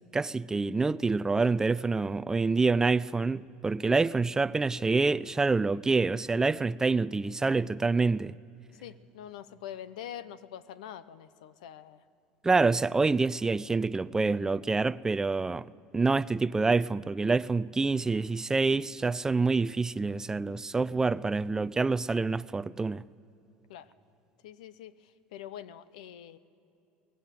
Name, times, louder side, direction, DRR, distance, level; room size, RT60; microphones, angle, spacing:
voice 1, 0.1-8.4 12.4-15.6 15.9-23.0, right 3 dB, 15° right, 0.4 m, -27 dB
voice 2, 8.8-12.0 23.7-23.9 24.4-26.4, left 10 dB, 85° left, 0.9 m, -44 dB
22.5 x 19.5 x 9.3 m
supercardioid pair, 110°, 4 cm